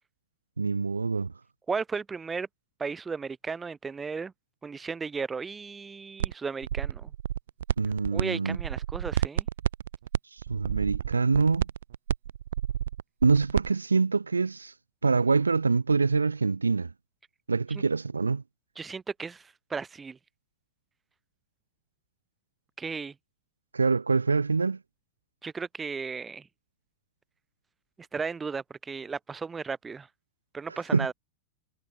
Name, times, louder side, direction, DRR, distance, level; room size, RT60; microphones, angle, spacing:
voice 1, 0.6-1.3 7.8-8.6 10.3-11.7 13.2-14.7 15.0-16.9 17.5-18.4 23.7-24.8 30.7-31.1, right 4 dB, 75° right, 1.1 m, -25 dB
voice 2, 1.7-2.5 2.8-4.3 4.6-7.1 8.1-9.5 17.7-17.8 18.8-20.2 22.8-23.1 25.4-26.5 28.1-30.1 30.5-31.1, right 5 dB, 15° right, 4.4 m, -35 dB
sound 1, 6.2-6.3 6.6-8.2 8.5-13.7, right 10 dB, 60° right, 2.0 m, -29 dB
figure-of-eight pair, 90°, 0 cm